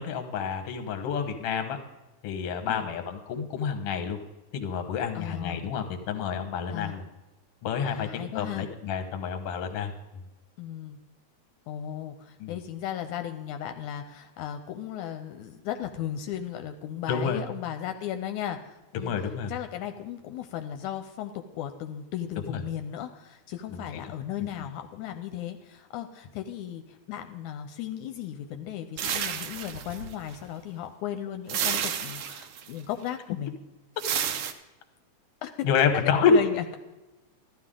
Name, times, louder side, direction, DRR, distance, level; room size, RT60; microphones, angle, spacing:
voice 1, 0.0-1.8 2.2-4.2 4.5-7.0 7.6-9.9 12.4-12.6 17.1-17.4 19.0-19.5 22.5-22.6 23.7-24.0 35.6-36.3, left 7 dB, 60° left, 6 dB, 1.8 m, -29 dB
voice 2, 5.2-5.6 6.7-7.0 7.9-8.7 10.6-11.0 11.7-19.2 19.5-33.5 35.4-35.5 36.3-36.8, left 10 dB, 80° left, 7 dB, 2.0 m, -36 dB
sound 1, 29.0-30.4 31.5-32.7 34.0-34.5, right 8 dB, 75° right, 1.3 m, -30 dB
14.0 x 11.5 x 3.7 m, 1.1 s
omnidirectional pair, 3.6 m